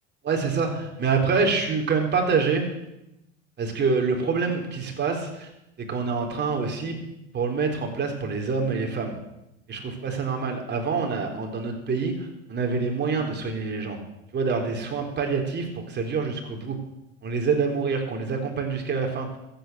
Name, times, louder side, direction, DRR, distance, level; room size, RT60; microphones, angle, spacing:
voice 1, 0.2-2.6 3.6-5.5 5.8-7.0 7.3-9.2 9.7-14.0 14.3-16.8 17.2-19.3, right 4 dB, 30° right, 2 dB, 3.9 m, -26 dB
14.0 x 9.0 x 8.0 m, 0.88 s
supercardioid pair, 105°, 34 cm